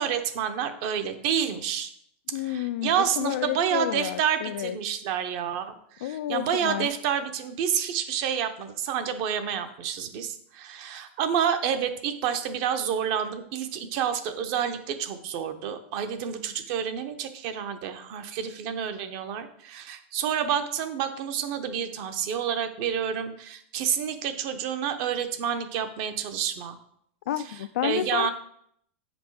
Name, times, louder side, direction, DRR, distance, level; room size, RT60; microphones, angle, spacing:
voice 1, 0.0-1.9 2.4-26.8 27.8-28.3, right 8 dB, 40° right, 9 dB, 0.8 m, -29 dB
voice 2, 2.3-4.8 6.0-6.9 27.3-28.3, left 12 dB, 80° left, 11 dB, 0.3 m, -30 dB
7.8 x 5.3 x 4.6 m, 0.69 s
supercardioid pair, 170°, 7 cm